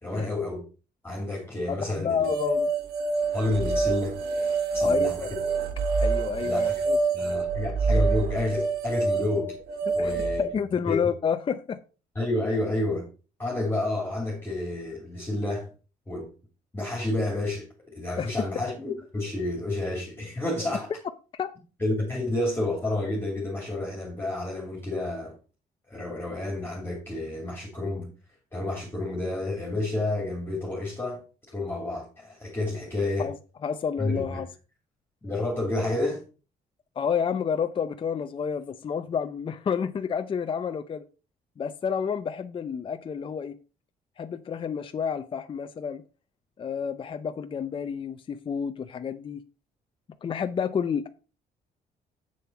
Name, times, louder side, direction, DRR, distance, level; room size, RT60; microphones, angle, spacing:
voice 1, 0.0-0.6 1.0-2.3 3.3-4.2 4.7-5.3 6.4-6.8 7.1-9.6 9.9-10.4 10.9-11.0 12.1-13.1 13.4-15.7 16.1-16.3 16.7-20.9 21.8-25.4 25.9-28.1 28.5-31.2 31.5-33.3 34.0-34.4 35.2-36.2, left 2 dB, 15° left, 2.6 m, -30 dB
voice 2, 1.7-2.7 4.8-5.3 6.0-7.0 9.9-11.8 18.2-18.3 21.3-21.6 33.2-33.3 33.6-34.5 37.0-41.0 41.6-43.6 44.2-46.0 46.6-49.4 50.2-51.1, left 7 dB, 35° left, 0.5 m, -30 dB
sound 1, 2.2-10.5, right 3 dB, 80° right, 1.5 m, -26 dB
7.8 x 6.9 x 4.5 m
cardioid pair, 130°, 16 cm